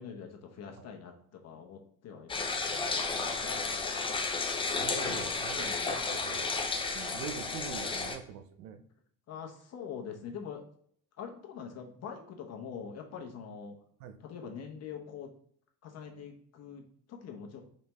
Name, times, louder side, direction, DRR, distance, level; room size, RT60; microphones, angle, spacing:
voice 1, 0.0-3.7 5.1-5.9 9.3-10.6 11.2-13.8 14.2-15.3 15.8-17.6, left 6 dB, 40° left, 3 dB, 0.8 m, -44 dB
sound 1, 2.3-8.2, left 4 dB, 15° left, 0.3 m, -32 dB
voice 2, 3.4-4.0 4.8-8.8 14.0-14.2, right 7 dB, 85° right, 8 dB, 0.6 m, -44 dB
4.3 x 3.3 x 3.0 m, 0.62 s
cardioid pair, 125°, 38 cm